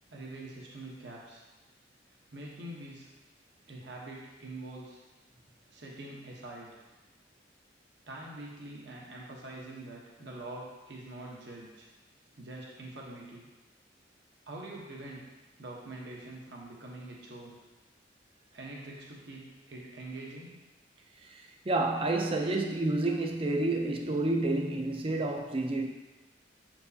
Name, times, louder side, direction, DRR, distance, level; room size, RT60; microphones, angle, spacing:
voice 1, 0.1-1.4 2.3-3.1 3.7-5.0 5.7-6.8 8.1-11.9 12.4-13.5 14.5-15.2 15.6-17.6 18.5-20.6, right 2 dB, 70° right, -3 dB, 1.1 m, -44 dB
voice 2, 21.2-25.9, right 2 dB, 30° right, 3 dB, 0.5 m, -29 dB
7.8 x 4.5 x 2.8 m, 1.1 s
head